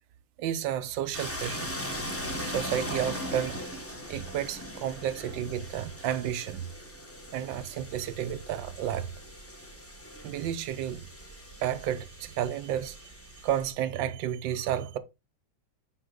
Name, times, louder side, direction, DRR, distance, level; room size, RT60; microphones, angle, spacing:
voice 1, 0.4-1.7 2.4-3.6 4.1-6.6 7.3-9.1 10.2-11.1 11.6-13.1 13.4-15.0, right 10 dB, 75° right, 1.3 m, -31 dB
sound 1, 1.1-13.7, equal, 10° left, 0.7 m, -40 dB
6.1 x 5.0 x 3.8 m
omnidirectional pair, 2.1 m